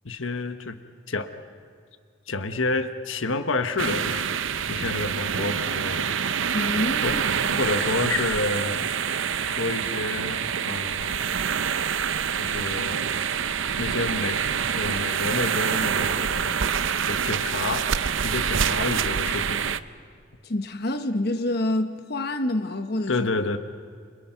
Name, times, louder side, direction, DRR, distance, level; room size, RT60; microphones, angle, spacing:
voice 1, 0.0-0.8 1.1-1.3 2.3-4.3 4.7-6.2 7.0-7.2 7.6-8.9 9.4-11.2 12.4-13.1 13.8-14.4 14.7-16.6 17.1-17.9 18.2-19.7 23.1-23.6, left 3 dB, 75° left, 1.2 m, -29 dB
sound 1, 3.8-19.8, right 7 dB, 75° right, 0.7 m, -26 dB
voice 2, 6.5-7.7 20.4-23.2, left 1 dB, 50° left, 1.1 m, -27 dB
29.5 x 27.0 x 5.9 m
head